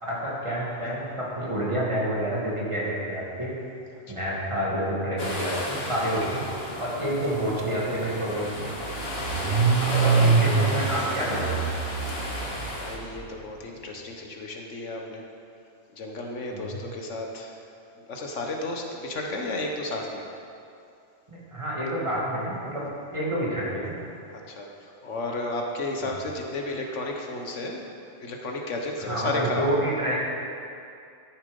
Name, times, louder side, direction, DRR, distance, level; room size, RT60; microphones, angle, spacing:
voice 1, 0.0-3.5 4.1-6.4 6.8-8.8 9.8-11.6 16.5-16.8 21.3-22.8 23.1-24.0 26.0-26.1 29.0-30.2, right 1 dB, 25° right, -6 dB, 2.5 m, -28 dB
sound 1, 5.2-13.0, left 1 dB, 55° left, 1.9 m, -33 dB
Car / Engine starting, 7.6-7.7 8.0-13.2, right 5 dB, 60° right, 1.0 m, -25 dB
voice 2, 9.2-9.6 12.7-15.3 15.9-17.5 18.0-20.3 24.5-27.8 28.2-29.7, left 2 dB, 75° left, 1 dB, 1.4 m, -33 dB
12.5 x 7.3 x 5.4 m, 2.5 s
omnidirectional pair, 1.3 m